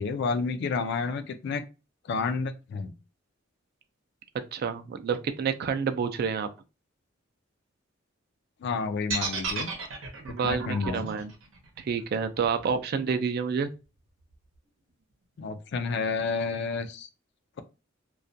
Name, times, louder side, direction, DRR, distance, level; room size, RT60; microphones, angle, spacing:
voice 1, 0.0-1.6 2.0-2.9 8.6-9.7 10.3-11.1 15.4-17.1, left 4 dB, 60° left, 0.3 m, -30 dB
voice 2, 4.5-6.5 10.2-11.3 11.8-13.7, right 6 dB, 55° right, 0.3 m, -29 dB
sound 1, 9.1-13.2, right 4 dB, 90° right, 0.7 m, -34 dB
2.3 x 2.1 x 2.6 m
head